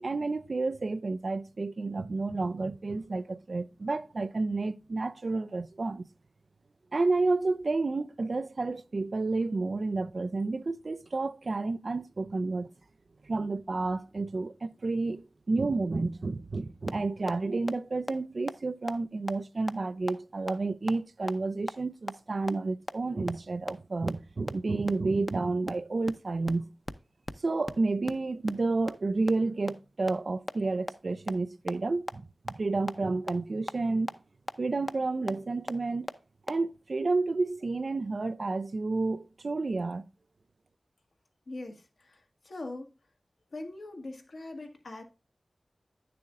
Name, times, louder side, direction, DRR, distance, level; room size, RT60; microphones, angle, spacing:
voice 1, 0.0-6.1 6.9-12.7 13.2-26.7 27.4-34.1 34.6-36.1 36.5-40.0, right 3 dB, 60° right, 0.4 m, -30 dB
sound 1, 16.9-17.0 17.3-17.4 17.7-17.8 18.1-18.2 18.5-18.6 18.9-19.0 19.3-19.4 19.7-19.8 20.1-20.2 20.5-20.6 20.9-21.0 21.3-21.4 21.7-21.8 22.1-22.2 22.5-22.6 22.9-23.0 23.3-23.4 23.7-23.8 24.1-24.2 24.5-24.6 24.9-25.0 25.3-25.4 25.7-25.8 26.1-26.2 26.5-26.6 26.9-27.0 27.3-27.4 27.7-27.8 28.1-28.2 28.5-28.6 28.9-29.0 29.3-29.4 29.7-29.8 30.1-30.2 30.5-30.6 30.9-31.0 31.3-31.4 31.7-31.8 32.1-32.2 32.5-32.6 32.9-33.0 33.3-33.4 33.7-33.8 34.1-34.2 34.5-34.6 34.9-35.0 35.3-35.4 35.7-35.8 36.1-36.2 36.5-36.6, equal, 10° left, 0.6 m, -32 dB
voice 2, 41.5-42.2 42.4-42.9 43.5-45.0, left 2 dB, 75° left, 1.5 m, -41 dB
9.3 x 6.8 x 2.5 m
wide cardioid pair, 55°, 0 cm